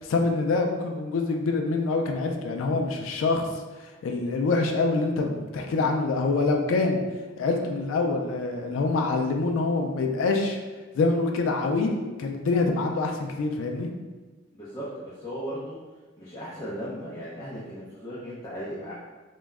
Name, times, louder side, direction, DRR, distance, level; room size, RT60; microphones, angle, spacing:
voice 1, 0.0-3.5 4.0-7.0 7.4-10.6 10.9-13.9, left 3 dB, 85° left, 3 dB, 0.3 m, -25 dB
voice 2, 14.5-15.8 16.2-18.9, equal, 20° left, -10 dB, 0.5 m, -36 dB
2.2 x 2.0 x 3.4 m, 1.3 s
head